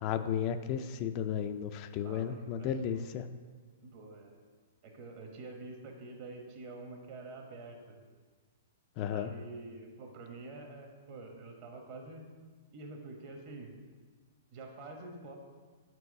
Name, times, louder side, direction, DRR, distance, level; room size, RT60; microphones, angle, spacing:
voice 1, 0.0-3.3 9.0-9.3, left 8 dB, 40° left, 9 dB, 0.3 m, -34 dB
voice 2, 2.0-3.0 3.9-4.4 4.8-8.0 9.1-12.3 12.7-13.7 14.5-15.4, right 3 dB, 45° right, 2 dB, 1.3 m, -47 dB
6.1 x 4.7 x 4.8 m, 1.5 s
hypercardioid pair, 135°, 0 cm